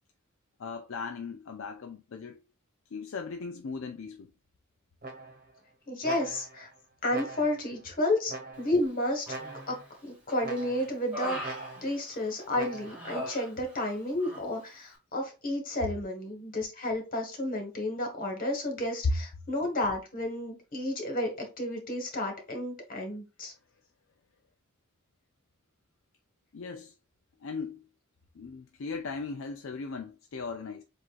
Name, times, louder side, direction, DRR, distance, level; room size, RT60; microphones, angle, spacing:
voice 1, 0.6-2.4 2.9-4.3 15.8-15.9 19.0-19.1 26.5-26.9 27.4-27.8 28.4-30.8, left 4 dB, 65° left, 0.5 m, -36 dB
sound 1, 5.0-5.6 6.0-6.7 7.1-7.7 8.3-8.9 9.3-9.9 10.4-11.0 11.4-12.0 12.5-13.1, right 2 dB, 45° right, 1.3 m, -42 dB
voice 2, 5.9-6.7 7.0-9.2 9.7-9.8 10.0-23.5, left 1 dB, 45° left, 1.5 m, -31 dB
Human voice, 9.3-9.9 10.3-12.4 12.8-13.9 14.2-14.5, right 1 dB, 5° right, 2.5 m, -40 dB
7.4 x 2.6 x 2.5 m
head